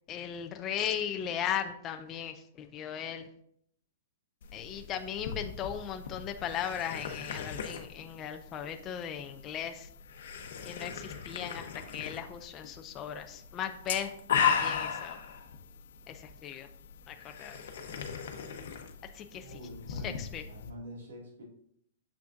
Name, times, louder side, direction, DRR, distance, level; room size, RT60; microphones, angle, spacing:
voice 1, 0.1-3.3 4.5-9.9 10.6-14.1 14.4-15.2 16.1-16.7 17.1-17.6 19.1-19.5 19.9-20.4, left 9 dB, 15° left, 6 dB, 0.3 m, -37 dB
sound 1, 4.4-20.7, left 7 dB, 55° left, 0.9 m, -37 dB
voice 2, 19.3-21.4, equal, 70° right, -2 dB, 2.1 m, -46 dB
7.0 x 5.9 x 2.5 m, 0.67 s
hypercardioid pair, 175°, 0 cm